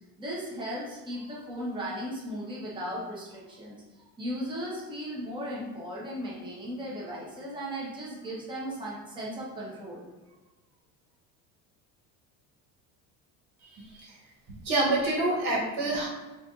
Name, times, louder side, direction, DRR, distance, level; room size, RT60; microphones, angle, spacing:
voice 1, 0.2-10.1, equal, 15° right, -5 dB, 0.9 m, -36 dB
voice 2, 14.6-16.1, right 2 dB, 75° right, -3 dB, 1.3 m, -26 dB
4.3 x 2.6 x 2.4 m, 1.2 s
cardioid pair, 115°, 36 cm